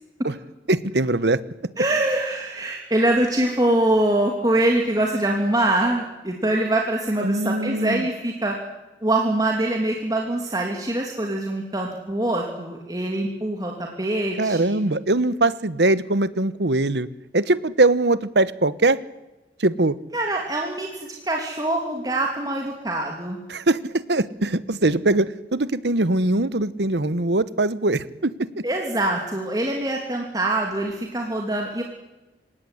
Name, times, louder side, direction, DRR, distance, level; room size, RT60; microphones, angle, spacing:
voice 1, 0.7-1.4 7.2-8.1 14.4-17.1 17.3-19.0 19.6-20.0 23.5-28.6, right 2 dB, 75° right, 16 dB, 1.2 m, -21 dB
voice 2, 1.8-8.6 9.0-14.8 20.1-23.4 28.6-31.8, right 1 dB, 20° right, 0 dB, 3.0 m, -24 dB
26.5 x 17.0 x 10.0 m, 1.1 s
head